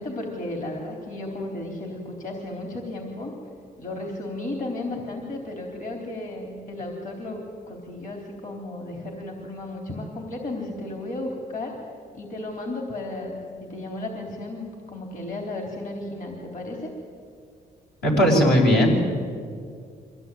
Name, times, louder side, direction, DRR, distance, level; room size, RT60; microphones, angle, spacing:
voice 1, 0.0-3.3 3.8-11.8 12.1-16.9, left 2 dB, 50° left, 1 dB, 3.9 m, -34 dB
voice 2, 18.0-19.1, equal, 80° left, 0 dB, 5.8 m, -18 dB
24.0 x 16.5 x 9.3 m, 2.2 s
cardioid pair, 90°, 17 cm